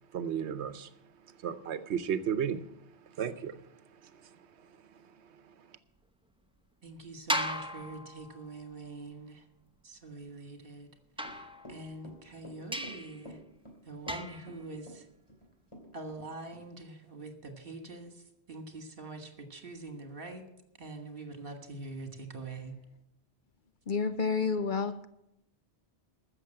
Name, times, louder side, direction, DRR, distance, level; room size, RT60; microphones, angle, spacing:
voice 1, 0.1-0.9 1.4-2.6 3.2-3.6, right 8 dB, 80° right, 1.0 m, -33 dB
voice 2, 6.8-9.5 9.8-10.9 11.2-13.4 13.8-15.1 15.9-20.4 20.8-22.8, right 2 dB, 55° right, 1.9 m, -44 dB
sound 1, 7.3-8.7 11.2-12.1 12.7-13.2 14.1-14.6, equal, 5° right, 0.7 m, -36 dB
Run / Walk footsteps, 11.2-16.3 16.5-16.6, equal, 25° left, 2.7 m, -50 dB
voice 3, 23.9-25.1, left 5 dB, 55° left, 0.7 m, -30 dB
14.5 x 6.8 x 7.7 m
omnidirectional pair, 1.1 m